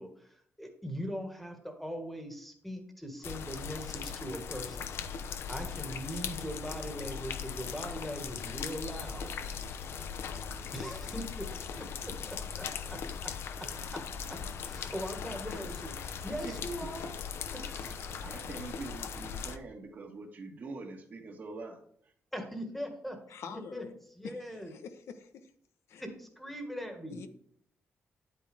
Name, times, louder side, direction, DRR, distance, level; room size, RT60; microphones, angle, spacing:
voice 1, 0.0-4.9 5.2-9.3 10.7-11.5 11.8-13.0 13.2-13.3 13.9-14.0 14.6-15.9 16.2-17.1 17.5-18.1 22.3-23.2 23.5-23.8 24.2-24.7 26.0-27.2, equal, 5° left, 4 dB, 1.8 m, -40 dB
sound 1, 3.2-19.6, left 6 dB, 65° left, 0.8 m, -39 dB
voice 2, 16.2-16.6 18.2-21.8, right 3 dB, 45° right, 2 dB, 1.8 m, -44 dB
voice 3, 23.3-23.9 24.2-25.5 25.9-26.0 27.1-27.3, left 6 dB, 85° left, 8 dB, 1.2 m, -46 dB
10.5 x 8.6 x 3.5 m, 0.64 s
wide cardioid pair, 170°, 4 cm